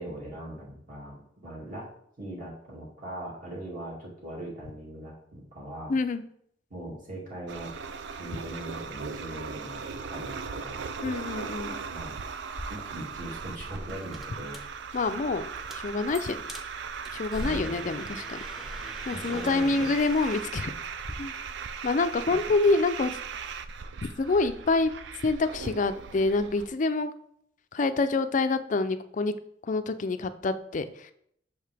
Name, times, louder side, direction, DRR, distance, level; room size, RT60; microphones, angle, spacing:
voice 1, 0.0-1.9 2.2-5.9 6.7-7.7 8.1-10.8 11.9-12.2 12.7-14.6 17.4-17.9 19.1-19.9 22.3-22.4, right 1 dB, 45° right, -4 dB, 2.3 m, -40 dB
voice 2, 5.9-6.2 11.0-11.8 14.9-15.5 15.7-16.4 17.1-18.4 19.1-20.7 21.2-21.3 21.8-23.1 24.2-24.9 25.2-27.1 27.7-29.3 29.6-31.1, left 3 dB, 45° left, 11 dB, 0.4 m, -26 dB
sound 1, 7.5-26.7, right 6 dB, 70° right, 0.4 m, -38 dB
sound 2, 12.5-21.1, equal, ahead, 0.7 m, -43 dB
6.4 x 4.7 x 3.4 m, 0.69 s
head